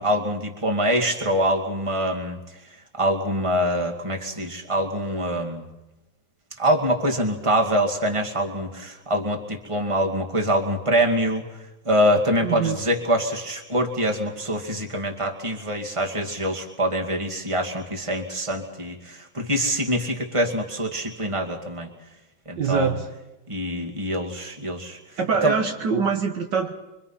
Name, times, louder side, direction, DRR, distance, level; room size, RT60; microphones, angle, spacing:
voice 1, 0.0-2.4 2.9-5.6 6.6-11.4 11.8-21.9 22.5-22.9 23.5-25.0 25.4-25.5, equal, 15° right, 2 dB, 2.2 m, -24 dB
voice 2, 12.4-12.8 22.6-23.1 25.2-26.7, right 6 dB, 65° right, 5 dB, 1.8 m, -24 dB
25.0 x 24.5 x 5.7 m, 1.0 s
omnidirectional pair, 2.1 m